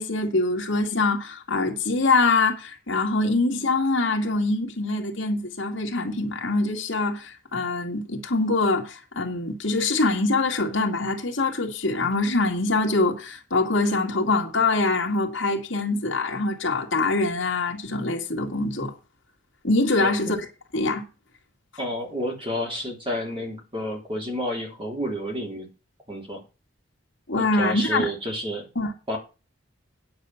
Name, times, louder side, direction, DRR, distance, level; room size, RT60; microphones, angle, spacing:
voice 1, 0.0-18.9 19.6-20.5 20.7-21.0 27.3-28.1 28.8-28.9, left 3 dB, 60° left, 2.2 m, -24 dB
voice 2, 21.8-25.7 26.1-26.4 27.3-28.7 29.1-29.2, equal, 25° right, 3.3 m, -30 dB
9.5 x 7.4 x 5.8 m
head